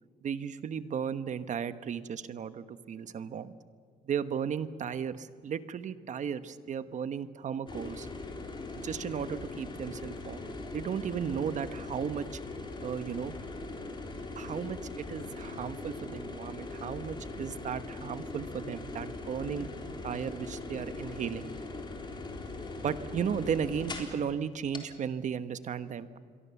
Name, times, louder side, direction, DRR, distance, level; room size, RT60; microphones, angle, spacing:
voice 1, 0.2-3.5 4.1-8.1 8.8-10.5 10.7-12.4 12.8-13.3 14.4-19.7 20.0-21.5 22.8-26.2, right 7 dB, 45° right, 12 dB, 1.1 m, -35 dB
sound 1, 7.7-24.2 24.7-24.8, left 3 dB, 25° left, 4.0 m, -41 dB
28.0 x 22.5 x 7.1 m, 2.1 s
cardioid pair, 110°, 17 cm